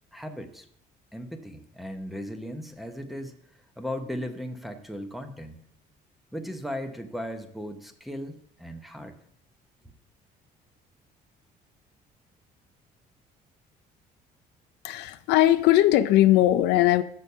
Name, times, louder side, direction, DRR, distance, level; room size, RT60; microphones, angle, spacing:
voice 1, 0.1-0.7 1.1-3.3 3.8-5.7 6.3-9.1, equal, ahead, 4 dB, 1.0 m, -37 dB
voice 2, 14.8-17.0, left 14 dB, 85° left, 12 dB, 0.5 m, -19 dB
7.0 x 6.4 x 5.4 m, 0.66 s
cardioid pair, 110°, 17 cm